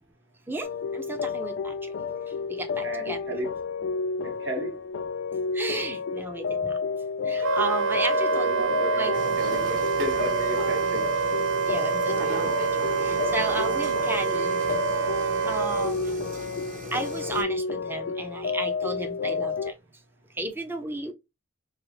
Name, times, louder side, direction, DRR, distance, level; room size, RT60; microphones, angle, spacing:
sound 1, 0.6-19.7, left 5 dB, 75° left, 0.3 m, -31 dB
voice 1, 0.9-1.7 2.5-3.2 5.5-6.7 7.3-8.5 9.0-9.4 11.7-12.7 13.0-14.6 15.5-16.2 16.9-19.7 20.4-21.1, right 2 dB, 10° right, 0.5 m, -33 dB
voice 2, 2.8-3.5 4.2-4.8 8.1-11.1, right 1 dB, 65° right, 1.4 m, -35 dB
Wind instrument woodwind instrument, 7.4-15.9, right 7 dB, 90° right, 0.4 m, -27 dB
sound 2, 9.1-17.4, equal, 45° right, 1.1 m, -38 dB
4.6 x 2.0 x 3.1 m
head